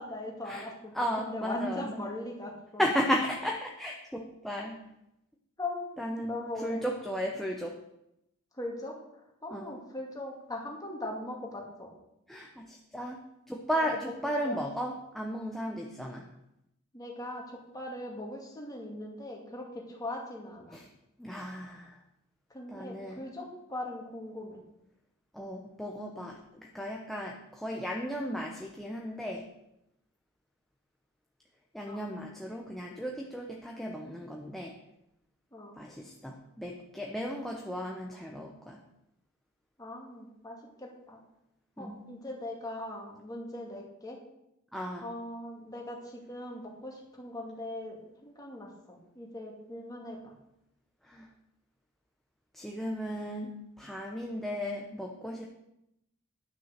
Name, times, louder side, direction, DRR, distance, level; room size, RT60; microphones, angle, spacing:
voice 1, 0.0-2.8 5.6-7.1 8.5-8.9 9.4-11.9 13.7-14.7 16.9-20.8 22.5-24.6 31.8-32.0 35.5-35.8 39.8-41.2 41.8-44.2 45.0-50.3, left 1 dB, 15° left, -1 dB, 2.2 m, -40 dB
voice 2, 0.9-1.8 2.8-4.8 6.0-6.3 6.6-7.7 9.5-9.7 12.3-13.2 13.5-16.2 20.7-20.8 21.2-21.9 22.7-23.2 25.3-29.5 31.7-34.7 35.8-38.8 41.8-42.0 44.7-45.0 51.1-51.3 52.5-55.5, equal, ahead, 0 dB, 0.8 m, -35 dB
10.5 x 6.3 x 6.5 m, 0.85 s
head